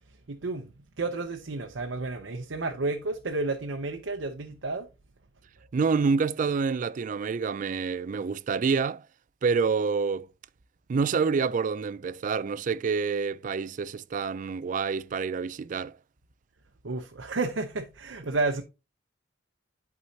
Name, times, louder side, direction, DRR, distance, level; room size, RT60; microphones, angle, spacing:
voice 1, 0.3-4.9 16.8-18.6, right 3 dB, 75° right, 0.7 m, -31 dB
voice 2, 5.7-9.0 9.4-10.3 10.9-16.0, right 5 dB, 40° right, 0.3 m, -27 dB
11.5 x 4.7 x 2.7 m
head